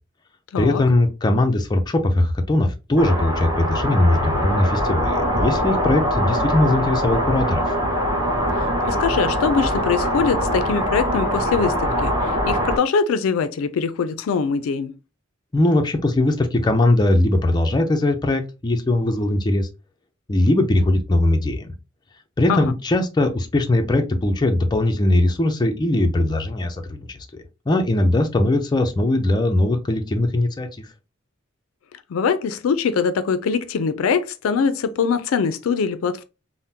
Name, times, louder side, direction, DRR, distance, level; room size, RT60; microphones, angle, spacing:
voice 1, 0.6-7.6 15.5-19.7 20.3-21.7 22.4-30.9, left 1 dB, 20° left, 0.4 m, -20 dB
sound 1, 3.0-12.8, equal, 20° right, 0.7 m, -22 dB
voice 2, 8.6-14.9 22.5-22.7 32.1-36.2, left 5 dB, 80° left, 0.4 m, -23 dB
3.5 x 2.0 x 2.7 m
head